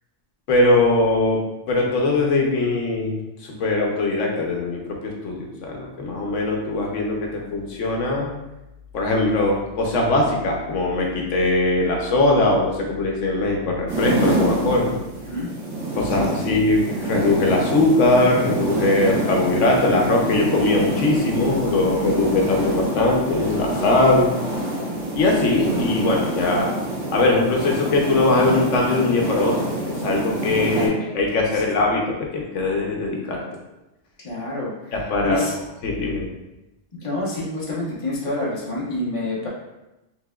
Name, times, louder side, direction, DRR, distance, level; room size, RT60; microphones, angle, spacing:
voice 1, 0.5-1.4 1.7-3.2 3.4-8.3 8.9-14.9 16.0-24.3 25.1-26.7 27.1-29.5 29.8-33.4 34.9-35.4 35.8-36.3, left 2 dB, 80° left, 0 dB, 1.1 m, -21 dB
sound 1, 13.9-30.9, right 1 dB, 75° right, 1.6 m, -26 dB
voice 2, 16.1-16.6 30.5-31.8 34.2-35.0 35.2-35.6 36.9-39.5, left 2 dB, 30° left, -5 dB, 1.0 m, -28 dB
4.7 x 3.6 x 2.3 m, 0.98 s
omnidirectional pair, 1.2 m